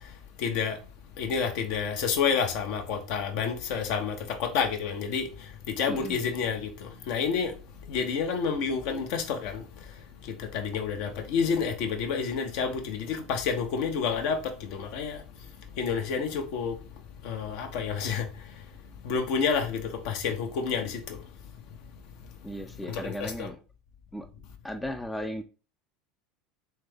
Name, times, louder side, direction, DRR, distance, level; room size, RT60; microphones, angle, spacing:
voice 1, 0.4-0.8 1.2-4.1 4.4-5.3 5.8-6.7 7.1-7.5 7.9-9.6 10.5-14.4 14.7-15.2 15.8-16.7 17.2-18.2 19.0-21.0 22.9-23.5, left 6 dB, 55° left, 0.8 m, -29 dB
voice 2, 5.9-6.2 22.4-23.6 24.1-24.3 24.6-25.4, equal, 5° left, 0.4 m, -36 dB
3.4 x 3.2 x 3.3 m
figure-of-eight pair, 75°, 0 cm